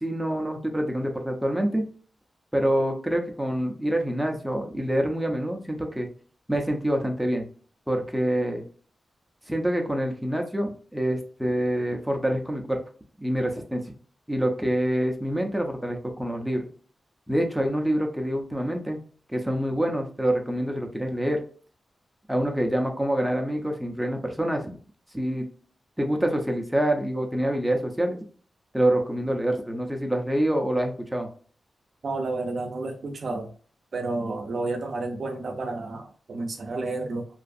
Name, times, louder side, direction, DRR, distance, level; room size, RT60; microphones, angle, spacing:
voice 1, 0.0-1.8 2.5-6.1 6.5-7.5 7.9-8.6 9.5-12.8 13.2-13.8 14.3-16.6 17.3-19.0 19.3-21.4 22.3-24.7 25.1-25.5 26.0-28.2 28.7-31.3, right 1 dB, 5° right, 2 dB, 0.5 m, -26 dB
voice 2, 32.0-33.5 33.9-37.3, right 2 dB, 65° right, 4 dB, 0.5 m, -31 dB
2.5 x 2.4 x 2.4 m, 0.41 s
wide cardioid pair, 90°, 0 cm